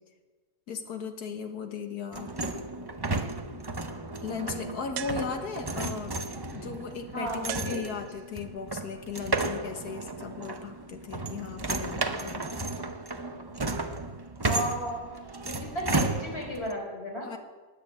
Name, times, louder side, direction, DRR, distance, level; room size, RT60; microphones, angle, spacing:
voice 1, 0.7-2.3 4.2-6.1 6.5-12.4 17.2-17.4, left 6 dB, 80° left, 6 dB, 1.9 m, -37 dB
sound 1, 2.1-16.7, right 2 dB, 30° right, 0.4 m, -33 dB
voice 2, 4.4-4.8 7.1-7.8 14.4-15.0 15.4-17.3, equal, 40° left, -1 dB, 4.3 m, -34 dB
sound 2, 5.0-5.8 7.5-8.5, right 11 dB, 85° right, 1.2 m, -40 dB
19.0 x 6.8 x 8.5 m, 1.3 s
omnidirectional pair, 1.6 m